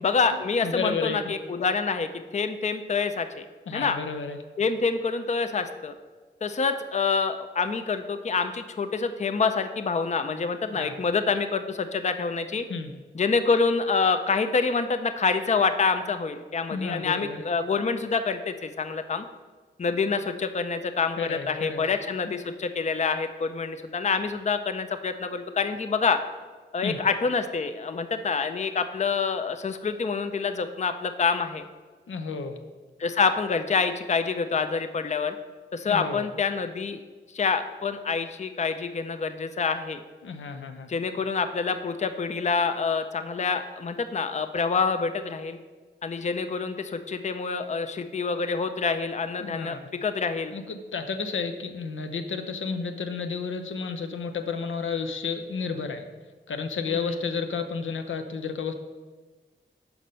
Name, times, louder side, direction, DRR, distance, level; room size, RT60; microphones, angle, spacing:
voice 1, 0.0-3.4 3.7-4.0 4.6-5.9 6.4-12.6 13.1-19.2 19.8-26.2 26.7-31.7 33.0-35.4 35.7-37.0 37.3-40.0 40.9-45.6 46.0-50.5 56.9-57.1, left 5 dB, 35° left, 9 dB, 0.5 m, -27 dB
voice 2, 0.6-1.2 3.7-4.4 10.7-10.9 12.7-12.9 16.7-17.4 21.2-21.9 26.8-27.0 32.1-32.6 35.9-36.3 40.2-40.9 49.4-49.8 50.5-56.0 56.5-58.7, left 5 dB, 85° left, 6 dB, 0.6 m, -31 dB
5.8 x 5.1 x 5.4 m, 1.4 s
cardioid pair, 60°, 20 cm